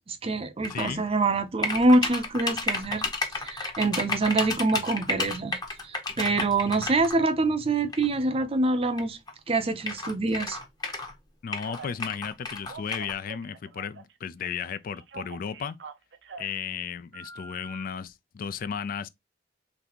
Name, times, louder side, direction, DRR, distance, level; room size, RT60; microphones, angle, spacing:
voice 1, 0.1-3.0 3.4-9.2 9.5-10.6, right 2 dB, 35° right, 0.5 m, -25 dB
sound 1, 0.6-0.9 1.6-7.1 7.9-8.1 9.0-9.1 9.3-9.4 9.8-11.1 11.5-13.1, left 3 dB, 25° left, 0.9 m, -31 dB
voice 2, 0.7-1.1 11.4-15.8 16.4-19.1, left 7 dB, 50° left, 0.3 m, -34 dB
Telephone, 11.6-12.0 12.5-14.1 14.4-16.6 17.1-17.8, right 3 dB, 80° right, 0.6 m, -44 dB
4.0 x 3.3 x 2.9 m
head